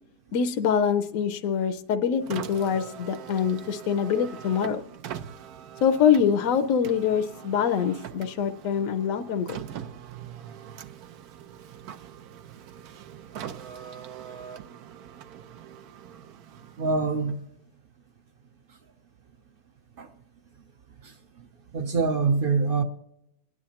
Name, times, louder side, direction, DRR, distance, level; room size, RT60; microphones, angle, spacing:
voice 1, 0.3-4.8 5.8-9.6, left 7 dB, 65° left, 0.9 m, -24 dB
Car, 2.2-17.6, right 9 dB, 75° right, 1.2 m, -42 dB
voice 2, 16.8-17.4 20.0-20.1 21.0-21.5 21.7-22.8, right 4 dB, 55° right, 0.6 m, -25 dB
27.0 x 9.8 x 2.8 m
omnidirectional pair, 1.7 m